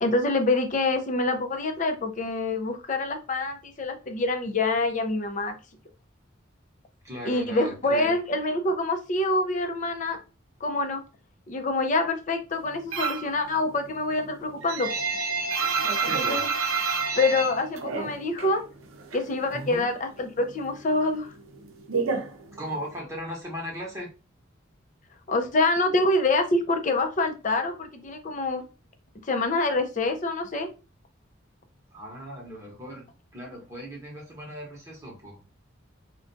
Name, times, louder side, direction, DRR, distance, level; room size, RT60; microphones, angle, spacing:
voice 1, 0.0-5.6 7.2-10.2 10.6-11.0 11.5-14.9 17.2-18.6 19.1-21.3 25.3-28.6 29.3-30.7, left 2 dB, 40° left, 6 dB, 0.5 m, -26 dB
voice 2, 7.0-8.1 16.0-16.5 19.5-19.9 22.5-24.1 31.9-33.1 33.3-35.4, equal, 15° right, -3 dB, 0.9 m, -37 dB
sound 1, 12.9-13.4 13.7-18.6 18.8-19.9 20.2-23.0, right 4 dB, 85° right, 0.6 m, -28 dB
2.4 x 2.2 x 3.8 m, 0.31 s
head